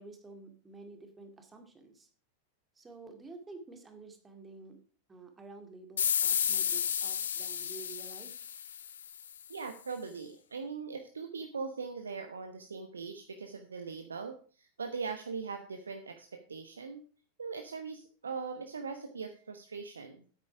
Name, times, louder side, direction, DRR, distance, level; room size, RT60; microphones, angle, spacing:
voice 1, 0.0-2.1 2.8-4.8 5.1-8.3, right 3 dB, 15° right, 5 dB, 2.1 m, -50 dB
sound 1, 6.0-9.3, left 8 dB, 65° left, 0.6 m, -32 dB
voice 2, 9.5-17.1 17.4-20.2, right 5 dB, 70° right, 6 dB, 1.0 m, -40 dB
9.7 x 8.4 x 4.9 m, 0.40 s
figure-of-eight pair, 90°, 0 cm